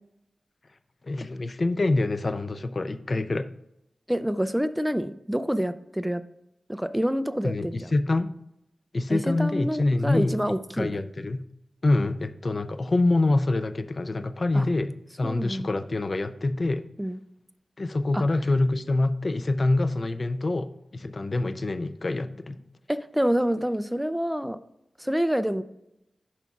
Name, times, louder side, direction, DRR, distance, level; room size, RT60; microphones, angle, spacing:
voice 1, 1.0-3.5 7.4-8.3 8.9-10.4 10.7-11.4 11.8-16.9 17.8-22.6, left 2 dB, 45° left, 11 dB, 0.5 m, -26 dB
voice 2, 4.1-6.2 6.7-7.9 9.1-11.0 14.5-14.6 15.2-15.7 17.0-17.2 18.1-18.2 22.9-24.6 25.0-25.6, equal, 5° right, 11 dB, 0.4 m, -27 dB
11.0 x 5.7 x 2.4 m, 0.84 s
wide cardioid pair, 75°, 0 cm